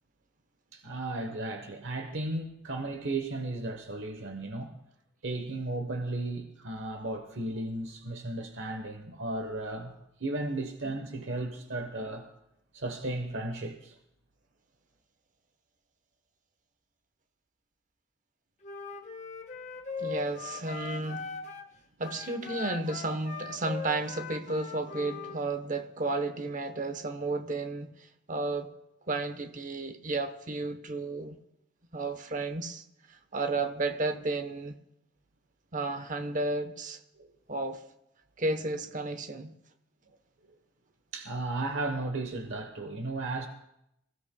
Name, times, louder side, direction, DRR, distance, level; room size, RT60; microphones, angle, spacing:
voice 1, 0.7-4.7 5.2-9.9 10.2-12.3 12.7-14.0 37.2-37.3 41.1-43.5, right 2 dB, 70° right, 1.1 m, -35 dB
Wind instrument woodwind instrument, 18.6-21.7 22.0-25.4, left 5 dB, 40° left, 1.1 m, -40 dB
voice 2, 20.0-21.3 22.0-27.9 28.3-28.7 29.1-31.4 31.9-32.8 33.1-34.8 35.7-37.0 37.5-37.8 38.4-39.5, right 2 dB, 40° right, 0.9 m, -32 dB
26.5 x 16.0 x 2.2 m
head